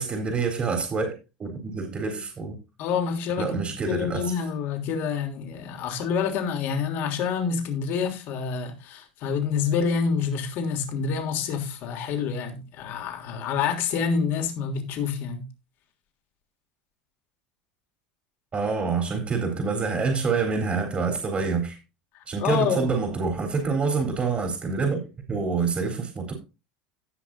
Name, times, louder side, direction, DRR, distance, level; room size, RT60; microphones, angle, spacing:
voice 1, 0.0-2.6 3.4-4.3 18.5-21.8 22.3-26.3, right 4 dB, 30° right, 3.8 m, -27 dB
voice 2, 2.8-15.5 22.1-22.9, left 6 dB, 55° left, 3.2 m, -27 dB
17.5 x 6.3 x 2.6 m
hypercardioid pair, 85°, 4 cm